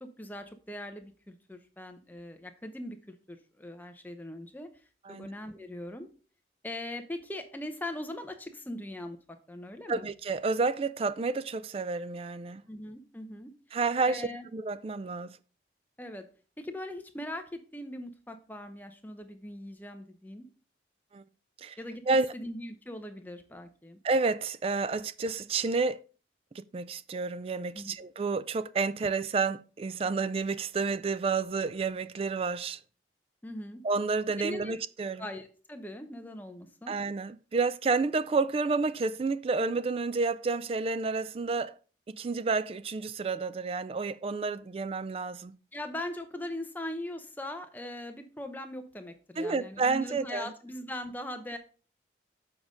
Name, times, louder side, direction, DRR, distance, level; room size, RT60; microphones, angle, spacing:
voice 1, 0.0-4.7 5.1-6.1 6.6-9.2 9.5-10.1 12.7-13.5 14.1-14.5 16.0-16.3 16.6-20.5 21.8-22.0 22.3-24.0 27.7-27.9 33.4-33.8 34.4-34.7 35.2-36.9 45.7-51.6, left 1 dB, 10° left, 0.7 m, -40 dB
voice 2, 9.9-12.6 13.7-15.4 21.1-21.2 21.6-21.8 22.1-22.3 24.0-26.0 26.7-32.8 33.8-35.2 36.9-41.7 42.1-45.5 49.4-50.5, right 4 dB, 30° right, 0.3 m, -30 dB
7.1 x 5.2 x 3.7 m
head